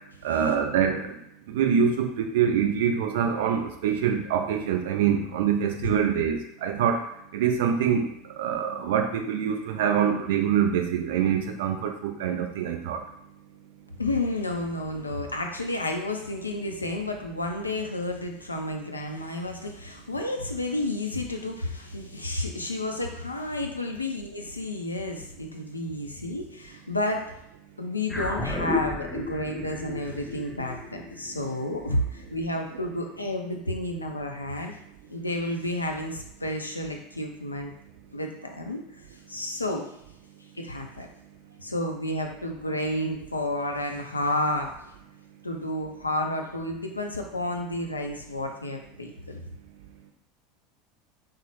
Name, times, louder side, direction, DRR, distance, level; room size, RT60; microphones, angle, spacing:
voice 1, 0.2-1.2 1.5-7.0 7.3-13.0, right 8 dB, 60° right, 4 dB, 0.4 m, -25 dB
voice 2, 14.0-27.3 27.8-34.8 35.1-37.7 38.1-38.8 39.3-39.9 40.5-41.1 41.6-44.7 45.4-49.4, left 1 dB, 80° left, 3 dB, 0.3 m, -31 dB
sound 1, 28.1-32.7, left 3 dB, 10° left, 0.5 m, -33 dB
3.0 x 2.0 x 3.0 m, 0.76 s
figure-of-eight pair, 80°, 0 cm